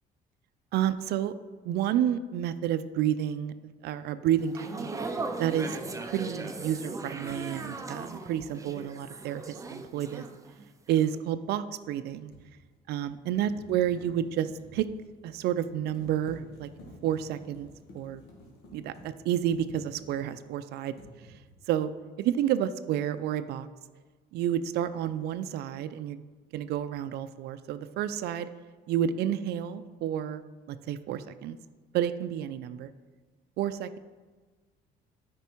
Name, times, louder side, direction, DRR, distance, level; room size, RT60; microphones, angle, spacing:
voice 1, 0.7-1.3 1.6-4.9 5.4-5.8 6.1-10.3 10.9-12.3 12.9-14.9 15.2-16.7 17.0-17.7 17.9-18.2 18.7-20.9 21.7-21.9 22.2-23.7 24.3-26.2 26.5-28.5 28.9-30.4 30.7-31.6 31.9-32.9 33.6-34.0, right 10 dB, 75° right, 12 dB, 0.5 m, -30 dB
sound 1, 4.4-10.6 10.9-11.2, right 3 dB, 20° right, 0.7 m, -38 dB
sound 2, 8.6-8.7 11.8-20.6 20.9-21.7, left 1 dB, 65° left, 2.0 m, -52 dB
9.1 x 5.3 x 4.5 m, 1.4 s
cardioid pair, 110°, 17 cm